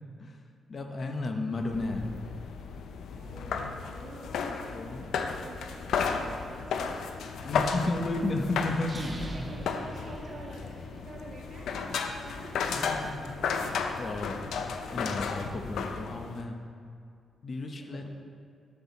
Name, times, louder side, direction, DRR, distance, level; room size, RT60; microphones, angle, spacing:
voice 1, 0.7-2.1 4.7-5.0 7.4-9.1 12.7-13.3 13.6-14.4 14.9-16.6 17.4-18.0, left 2 dB, 40° left, 4 dB, 0.8 m, -33 dB
sound 1, 1.5-16.4, left 5 dB, 85° left, 0.5 m, -34 dB
voice 2, 3.1-8.7 9.2-12.9 13.3-13.4 17.8-18.1, right 2 dB, 45° right, -3 dB, 1.9 m, -49 dB
sound 2, 8.8-10.9, right 1 dB, 25° right, 0.8 m, -40 dB
7.9 x 7.8 x 4.2 m, 2.4 s
cardioid pair, 125°, 0 cm